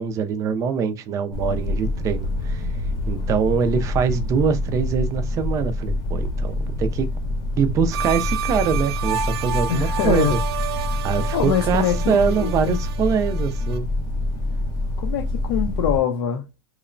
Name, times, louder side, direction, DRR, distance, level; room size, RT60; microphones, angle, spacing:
voice 1, 0.0-2.7 3.1-7.1 7.6-10.4 10.8-13.9, right 6 dB, 25° right, 0.3 m, -23 dB
sound 1, 1.3-16.0, left 2 dB, 30° left, 0.7 m, -26 dB
sound 2, 7.9-13.8, right 9 dB, 85° right, 0.5 m, -30 dB
voice 2, 9.7-10.4 10.9-11.0 11.3-12.8 15.0-16.5, left 8 dB, 65° left, 0.5 m, -24 dB
2.9 x 2.0 x 2.4 m
supercardioid pair, 145°, 13 cm